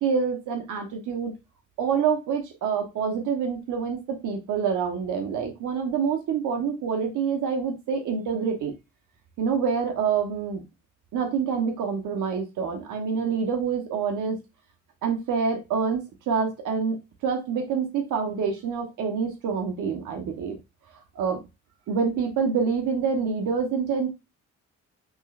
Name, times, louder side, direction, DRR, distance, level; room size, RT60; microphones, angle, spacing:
voice 1, 0.0-1.3 1.8-8.7 9.4-10.6 11.1-14.4 15.0-20.6 21.1-21.4 21.9-24.1, right 6 dB, 80° right, 3 dB, 1.2 m, -26 dB
5.4 x 3.1 x 2.5 m, 0.24 s
cardioid pair, 90°, 30 cm